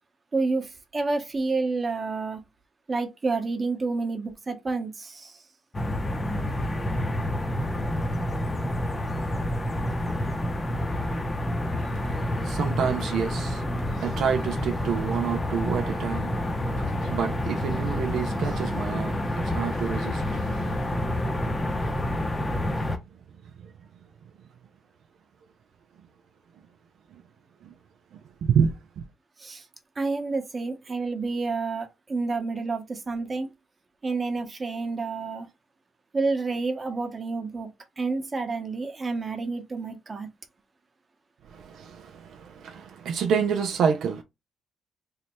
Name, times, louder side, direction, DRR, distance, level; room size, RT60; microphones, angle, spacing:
voice 1, 0.3-2.4 2.9-5.4 29.4-29.7 30.0-33.5 34.0-35.5 36.1-37.7 38.0-40.3, right 3 dB, 30° right, 0.9 m, -29 dB
sound 1, 5.7-23.0, left 1 dB, 20° left, 0.7 m, -28 dB
voice 2, 11.6-22.9 23.6-23.7 27.6-27.7 28.4-29.0 41.5-44.2, right 7 dB, 75° right, 0.4 m, -29 dB
3.2 x 2.1 x 4.2 m
cardioid pair, 90°, 0 cm